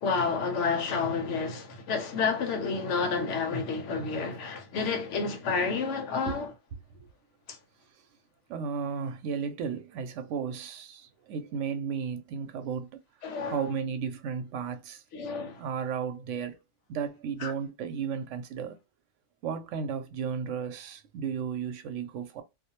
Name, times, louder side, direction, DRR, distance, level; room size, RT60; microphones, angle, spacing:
voice 1, 0.0-6.5 13.2-13.7 15.1-15.6 17.4-17.5, left 5 dB, 80° left, 1.0 m, -30 dB
voice 2, 8.5-12.9 13.5-15.0 15.6-16.6 16.9-18.8 19.4-22.4, right 7 dB, 90° right, 0.9 m, -34 dB
2.5 x 2.1 x 2.8 m
omnidirectional pair, 1.2 m